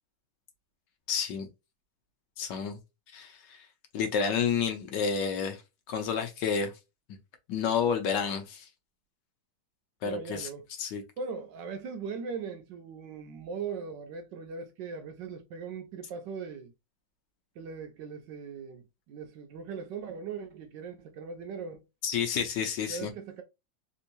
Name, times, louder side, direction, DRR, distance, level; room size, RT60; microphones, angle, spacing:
voice 1, 1.1-1.5 2.4-2.8 3.1-3.7 3.9-5.6 5.9-6.7 7.5-8.7 10.0-10.5 10.8-11.0 22.0-23.1, left 6 dB, 70° left, 1.2 m, -30 dB
voice 2, 10.0-10.7 11.2-16.7 17.6-21.8 22.9-23.4, right 5 dB, 75° right, 1.1 m, -39 dB
3.5 x 2.8 x 2.5 m
omnidirectional pair, 2.2 m